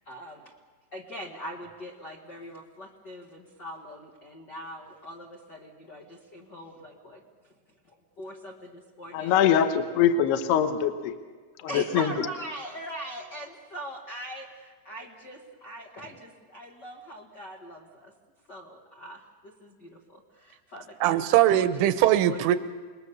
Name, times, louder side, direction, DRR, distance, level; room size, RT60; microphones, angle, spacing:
voice 1, 0.1-0.4 0.9-7.2 8.2-9.3 11.7-18.1 18.5-19.2 19.6-21.2 22.2-22.4, equal, 85° left, 0 dB, 0.9 m, -41 dB
voice 2, 9.1-11.1 11.6-12.3, left 8 dB, 70° left, 7 dB, 2.9 m, -23 dB
voice 3, 21.0-22.6, right 12 dB, 80° right, 11 dB, 3.2 m, -21 dB
28.5 x 21.5 x 7.1 m, 1.4 s
omnidirectional pair, 5.7 m